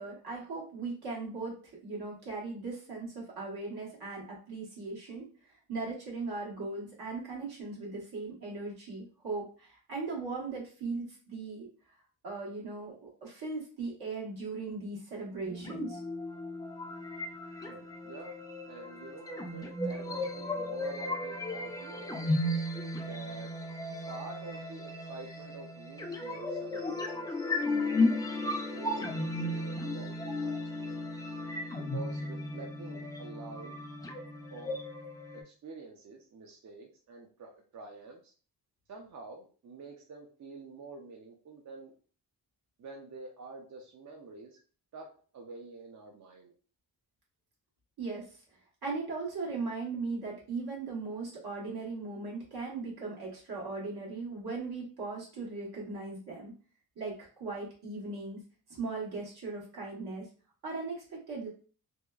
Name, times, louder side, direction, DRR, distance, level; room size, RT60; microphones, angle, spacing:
voice 1, 0.0-1.5 1.8-5.3 5.7-11.7 12.2-16.0 48.0-48.3 48.8-56.5 57.0-58.4 58.7-60.3 60.6-61.5, right 3 dB, 75° right, -4 dB, 1.3 m, -38 dB
sound 1, 15.4-35.4, left 2 dB, 10° left, 0.3 m, -35 dB
voice 2, 17.7-18.4 18.7-22.3 23.0-23.7 24.1-31.0 31.8-33.8 34.5-34.8 35.4-38.3 38.9-41.9 42.8-44.6 44.9-46.5, right 3 dB, 50° right, 0 dB, 0.5 m, -48 dB
2.8 x 2.1 x 2.3 m, 0.39 s
cardioid pair, 95°, 38 cm